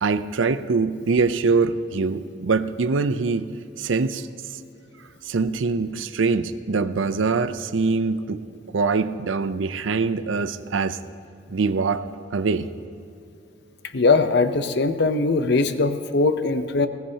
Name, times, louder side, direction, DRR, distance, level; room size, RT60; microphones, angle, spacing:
voice 1, 0.0-3.5 3.8-4.3 5.2-8.4 8.7-11.0 11.5-12.0 12.3-12.7, right 4 dB, 90° right, 12 dB, 0.6 m, -23 dB
voice 2, 13.8-16.9, left 3 dB, 60° left, 10 dB, 0.7 m, -21 dB
20.0 x 17.0 x 2.8 m, 2.5 s
head